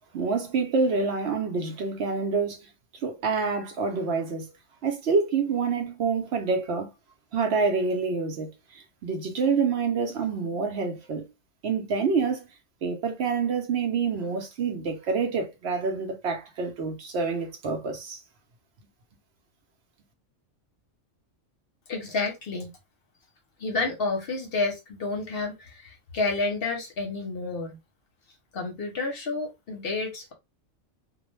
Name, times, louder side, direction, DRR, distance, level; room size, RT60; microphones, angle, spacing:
voice 1, 0.1-2.7 3.0-4.5 4.8-6.9 7.3-11.2 11.6-12.4 12.8-18.2, right 4 dB, 65° right, 0.8 m, -27 dB
voice 2, 21.9-22.7 23.6-27.8 28.5-30.3, left 3 dB, 55° left, 0.8 m, -30 dB
2.2 x 2.1 x 3.0 m
omnidirectional pair, 1.3 m